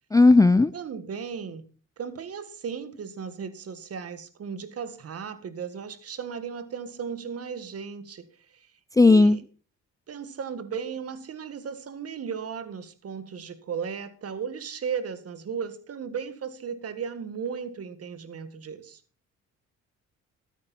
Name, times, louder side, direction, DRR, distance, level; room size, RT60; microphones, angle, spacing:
voice 1, 0.1-0.7 9.0-9.4, left 3 dB, 10° left, 0.4 m, -15 dB
voice 2, 0.7-1.6 2.0-8.7 9.0-9.4 10.1-19.0, right 6 dB, 55° right, 1.8 m, -36 dB
13.5 x 9.2 x 4.3 m
cardioid pair, 90°, 30 cm